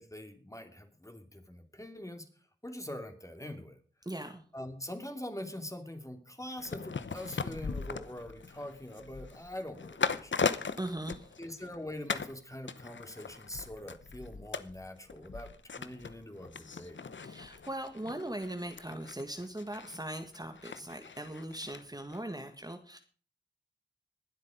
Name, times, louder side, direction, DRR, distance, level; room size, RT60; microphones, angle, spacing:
voice 1, 0.0-2.3 2.6-3.8 4.5-10.3 11.4-17.0, left 1 dB, 15° left, 6 dB, 3.0 m, -43 dB
voice 2, 4.0-4.4 10.8-11.4 17.2-23.0, right 1 dB, 20° right, 6 dB, 1.8 m, -40 dB
sound 1, 6.6-11.8 12.1-12.4 12.7-21.8 22.1-22.2, left 5 dB, 75° left, 1.0 m, -39 dB
21.0 x 8.3 x 5.2 m, 0.41 s
wide cardioid pair, 50°, 19 cm